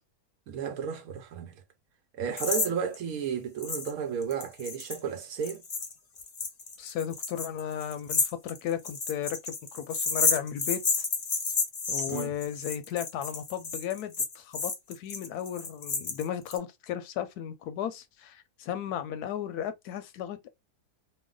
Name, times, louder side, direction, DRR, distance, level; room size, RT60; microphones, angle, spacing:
voice 1, 0.5-1.5 2.1-5.6 12.1-12.3, right 7 dB, 70° right, 1.1 m, -33 dB
sound 1, 2.4-2.7 2.9-3.0 3.6-3.9 4.2-16.6, left 4 dB, 45° left, 0.7 m, -31 dB
voice 2, 6.8-10.8 11.9-20.5, left 9 dB, 85° left, 1.1 m, -35 dB
3.0 x 2.1 x 3.6 m
omnidirectional pair, 1.6 m